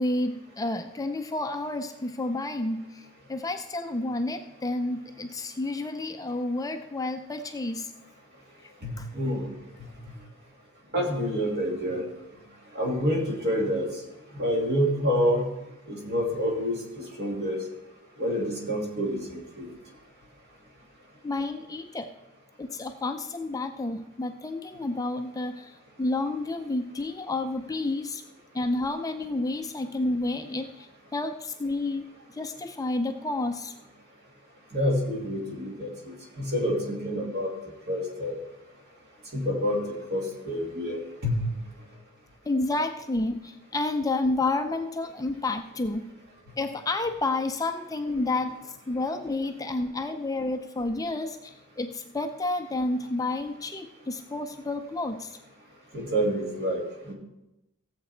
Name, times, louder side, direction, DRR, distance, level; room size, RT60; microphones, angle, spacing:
voice 1, 0.0-7.9 9.0-9.1 21.2-22.1 22.6-28.2 28.5-33.7 42.5-46.1 46.6-48.6 48.9-55.4, left 2 dB, 15° left, 6 dB, 0.5 m, -30 dB
voice 2, 8.8-9.5 10.9-12.0 12.7-13.9 14.3-15.4 15.9-16.8 17.2-17.6 18.2-19.7 34.7-37.5 37.9-38.4 39.3-39.8 40.1-41.4 55.9-57.1, equal, 50° right, -1 dB, 2.8 m, -27 dB
16.0 x 7.5 x 4.4 m, 0.94 s
head